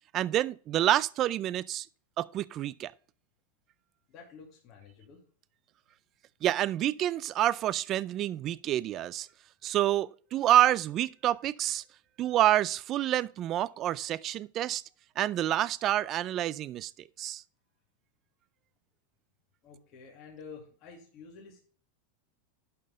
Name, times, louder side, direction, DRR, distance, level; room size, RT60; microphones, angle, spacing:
voice 1, 0.1-1.9 2.2-2.9 6.4-9.3 9.6-11.8 12.2-14.8 15.2-16.9 17.2-17.4, right 12 dB, 35° right, 0.4 m, -28 dB
voice 2, 4.1-5.2 19.6-21.6, left 5 dB, 40° left, 2.4 m, -50 dB
11.5 x 4.5 x 5.4 m
supercardioid pair, 150°, 0 cm